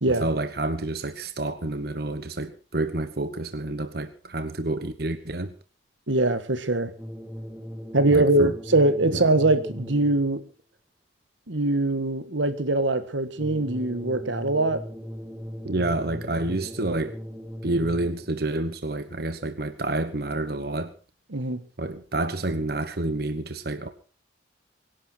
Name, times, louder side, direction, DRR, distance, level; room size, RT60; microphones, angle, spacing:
voice 1, 0.1-5.5 8.1-8.5 9.1-9.2 15.6-17.2 17.6-20.9 21.8-23.9, right 2 dB, 55° right, 10 dB, 1.2 m, -29 dB
voice 2, 6.1-6.9 7.9-10.4 11.5-14.8 21.3-21.6, right 2 dB, 85° right, 11 dB, 1.6 m, -22 dB
sound 1, 6.9-10.4 13.3-18.4, equal, 5° right, 3.1 m, -38 dB
24.0 x 11.5 x 4.5 m, 0.35 s
head